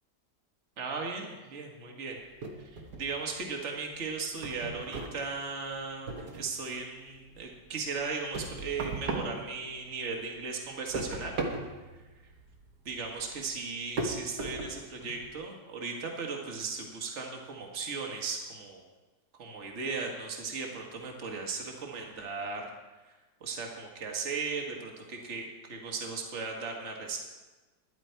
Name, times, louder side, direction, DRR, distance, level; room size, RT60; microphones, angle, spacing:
voice 1, 0.8-2.2 2.6-11.4 11.6-11.7 12.9-18.8 19.3-22.7 23.4-27.3, right 4 dB, 45° right, 1 dB, 1.8 m, -37 dB
sound 1, 2.4-3.5 3.8-6.7 7.1-10.1 10.4-15.3, right 2 dB, 70° right, 1.9 m, -38 dB
12.0 x 11.0 x 4.5 m, 1.2 s
omnidirectional pair, 1.8 m